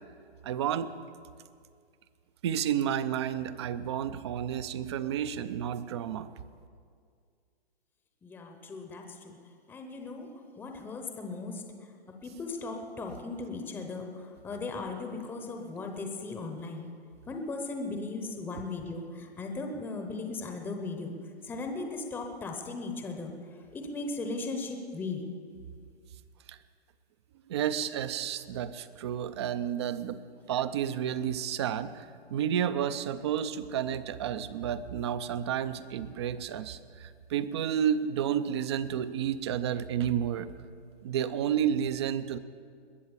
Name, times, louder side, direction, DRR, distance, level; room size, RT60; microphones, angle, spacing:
voice 1, 0.4-0.9 2.4-6.3 18.5-18.6 26.5-26.6 27.5-30.2 30.5-40.5 41.0-42.4, right 9 dB, 25° right, 14 dB, 0.4 m, -31 dB
voice 2, 8.2-9.4 9.7-10.3 10.6-11.6 12.2-16.9 17.3-21.1 21.4-23.3 23.7-25.2, left 3 dB, 5° left, 4 dB, 0.8 m, -37 dB
21.0 x 7.3 x 7.2 m, 2.1 s
hypercardioid pair, 145°, 32 cm